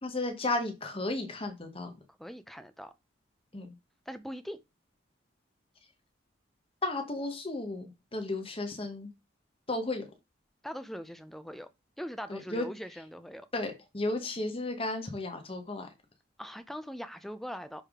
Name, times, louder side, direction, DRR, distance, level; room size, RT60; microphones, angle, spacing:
voice 1, 0.0-1.9 3.5-3.7 6.8-9.1 9.7-10.0 12.3-12.7 13.5-15.9, left 2 dB, 30° left, 0.9 m, -34 dB
voice 2, 2.2-2.9 4.1-4.6 10.6-11.7 12.0-13.5 16.4-17.8, equal, ahead, 0.4 m, -41 dB
9.9 x 3.5 x 3.6 m
head